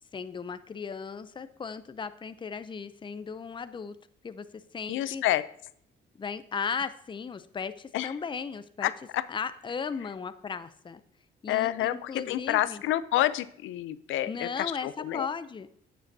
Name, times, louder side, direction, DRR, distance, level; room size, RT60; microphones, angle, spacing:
voice 1, 0.1-4.0 4.2-4.5 4.7-5.2 6.1-8.9 9.3-11.0 11.4-12.8 14.3-15.7, left 5 dB, 25° left, 12 dB, 0.5 m, -36 dB
voice 2, 4.9-5.5 7.9-8.1 8.8-9.2 11.5-15.3, left 14 dB, 80° left, 16 dB, 0.5 m, -29 dB
9.2 x 7.4 x 2.7 m, 0.67 s
cardioid pair, 90°, 20 cm